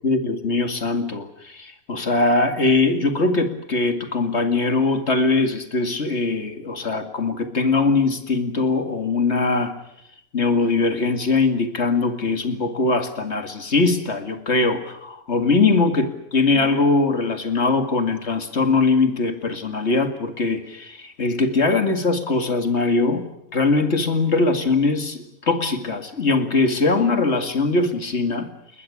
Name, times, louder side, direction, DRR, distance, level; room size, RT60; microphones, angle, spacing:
voice 1, 0.0-9.7 10.3-23.2 23.5-28.5, left 3 dB, 50° left, 7 dB, 2.4 m, -21 dB
21.0 x 20.5 x 9.9 m, 0.80 s
omnidirectional pair, 1.5 m